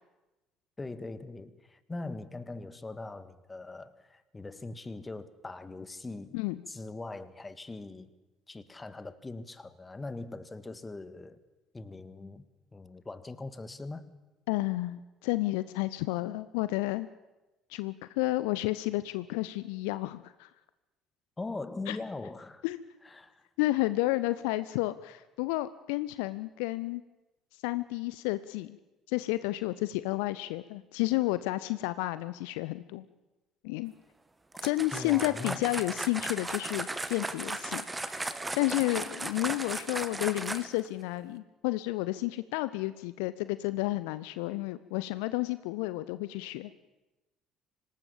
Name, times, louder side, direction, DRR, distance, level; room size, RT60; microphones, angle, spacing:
voice 1, 0.8-6.4 6.7-8.1 8.5-11.4 11.7-12.5 12.7-14.1 21.4-22.6 23.0-23.4 34.9-35.6, left 3 dB, 20° left, 14 dB, 1.7 m, -41 dB
voice 2, 14.5-17.1 17.7-20.5 21.9-22.0 22.6-22.8 23.6-27.0 27.6-28.8 29.1-33.1 33.6-33.9 34.6-46.7, left 18 dB, 65° left, 15 dB, 0.7 m, -31 dB
sound 1, 34.5-40.9, right 2 dB, 15° right, 1.7 m, -36 dB
26.0 x 19.0 x 7.1 m, 1.1 s
figure-of-eight pair, 55°, 0 cm